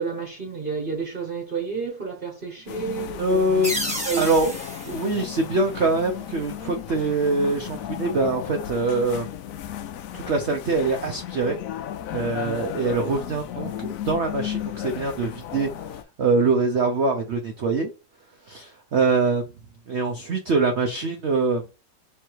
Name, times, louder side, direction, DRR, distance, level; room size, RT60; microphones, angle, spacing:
voice 1, 0.0-4.5 12.4-12.7, right 5 dB, 35° right, 1.0 m, -31 dB
sound 1, 2.7-16.0, left 11 dB, 90° left, 0.7 m, -35 dB
voice 2, 3.2-3.8 4.2-4.5 4.9-9.3 10.1-11.6 12.1-17.9 18.5-19.4 19.9-21.6, right 3 dB, 70° right, 0.6 m, -24 dB
sound 2, 3.6-6.2, equal, 5° right, 0.9 m, -32 dB
3.6 x 3.2 x 4.5 m
omnidirectional pair, 2.0 m